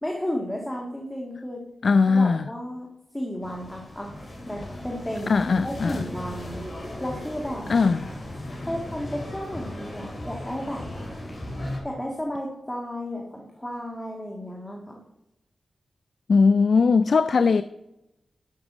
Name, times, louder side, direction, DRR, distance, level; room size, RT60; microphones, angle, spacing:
voice 1, 0.0-1.6 2.1-2.9 3.1-4.1 4.5-5.4 5.6-6.6 7.0-7.7 8.7-10.8 11.8-15.0, equal, 10° left, 1.8 m, -33 dB
voice 2, 1.8-2.4 5.3-6.1 7.7-8.1 16.3-17.6, left 4 dB, 65° left, 0.3 m, -19 dB
sound 1, 3.4-11.8, left 1 dB, 35° left, 3.8 m, -37 dB
11.5 x 5.9 x 6.3 m
wide cardioid pair, 85°, 0 cm